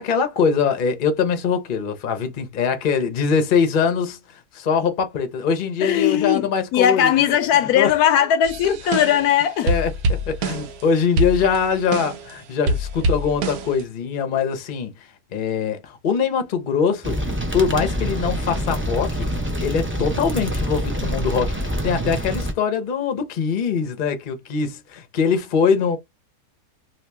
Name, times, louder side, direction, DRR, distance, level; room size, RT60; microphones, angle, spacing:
voice 1, 0.0-7.1 7.7-7.9 8.6-8.8 9.6-17.2 17.5-19.3 19.6-26.0, left 6 dB, 45° left, 0.7 m, -22 dB
voice 2, 5.8-6.5 6.7-9.7, left 10 dB, 90° left, 1.1 m, -18 dB
sound 1, 8.4-9.4 9.7-10.9 11.2-12.3 12.7-13.8, right 1 dB, 85° right, 1.2 m, -25 dB
sound 2, 17.0-22.5, equal, 15° right, 0.4 m, -26 dB
2.9 x 2.8 x 3.3 m
omnidirectional pair, 1.5 m